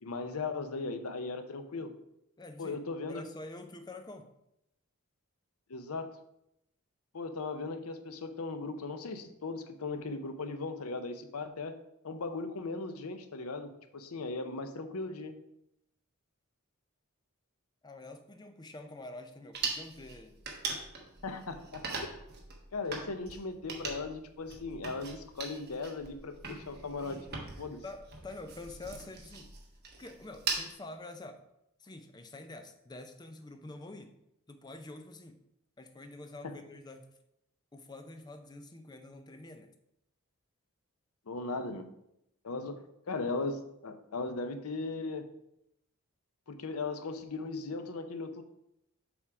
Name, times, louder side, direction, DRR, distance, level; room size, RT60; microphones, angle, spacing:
voice 1, 0.0-1.9 2.6-3.2 5.7-6.1 7.1-11.7 12.0-15.3 21.2-22.1 22.7-27.2 27.6-27.8 36.4-36.5 41.3-41.9 42.4-45.3 46.5-48.4, left 3 dB, 85° left, 8 dB, 0.7 m, -38 dB
voice 2, 2.4-2.8 3.1-4.3 17.8-20.3 27.3-27.5 27.8-29.5 30.0-31.4 31.8-34.1 34.5-35.4 35.8-37.1 37.7-39.7, left 2 dB, 20° left, 7 dB, 0.5 m, -47 dB
sound 1, 19.5-30.7, right 4 dB, 50° right, 1.1 m, -41 dB
7.0 x 3.6 x 4.8 m, 0.81 s
head